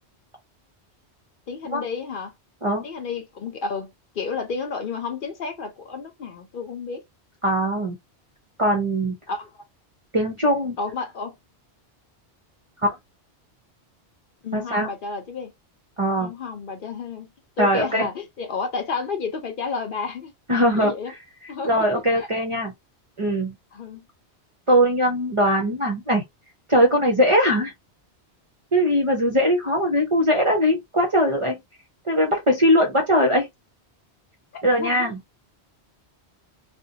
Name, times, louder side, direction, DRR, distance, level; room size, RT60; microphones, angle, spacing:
voice 1, 1.5-2.3 2.8-3.9 4.1-7.0 9.3-9.5 10.8-11.3 14.4-15.5 16.2-17.3 17.6-21.1 21.5-21.9 22.2-22.3 23.7-24.0 34.5-35.1, left 5 dB, 55° left, 0.7 m, -31 dB
voice 2, 7.4-8.0 8.6-9.1 10.1-10.8 14.5-14.9 16.0-16.3 17.6-18.1 20.5-20.9 21.6-22.7 23.2-23.5 24.7-26.2 26.7-27.7 28.7-31.6 32.0-33.5 34.6-35.2, equal, 40° right, 0.5 m, -20 dB
2.5 x 2.1 x 2.7 m
omnidirectional pair, 1.2 m